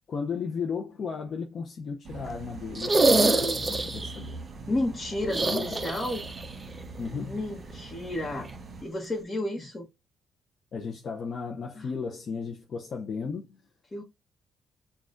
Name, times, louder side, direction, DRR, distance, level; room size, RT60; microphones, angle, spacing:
voice 1, 0.1-3.2 3.6-4.4 5.2-5.8 7.0-7.4 10.7-13.5, left 5 dB, 55° left, 0.6 m, -35 dB
sound 1, 2.0-8.8, right 3 dB, 55° right, 1.4 m, -42 dB
sound 2, 2.7-4.2 5.3-6.5 6.7-6.8 8.4-8.5, right 2 dB, 25° right, 0.5 m, -25 dB
voice 2, 3.2-3.6 4.7-6.2 7.2-8.5 8.8-9.9 11.8-11.9 13.9-14.0, left 1 dB, 30° left, 1.1 m, -32 dB
6.2 x 2.4 x 2.5 m
cardioid pair, 90°, 0 cm